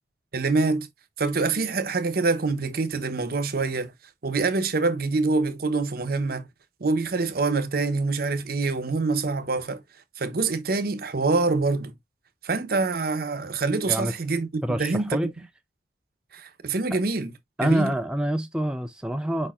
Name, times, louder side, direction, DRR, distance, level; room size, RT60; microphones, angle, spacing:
voice 1, 0.3-0.9 1.2-3.9 4.2-6.5 6.8-9.8 10.2-11.9 12.4-15.2 16.3-17.3 17.6-17.9, right 3 dB, 55° right, 0.8 m, -25 dB
voice 2, 14.6-15.3 17.6-19.5, equal, 5° right, 0.3 m, -26 dB
5.2 x 4.2 x 2.4 m
head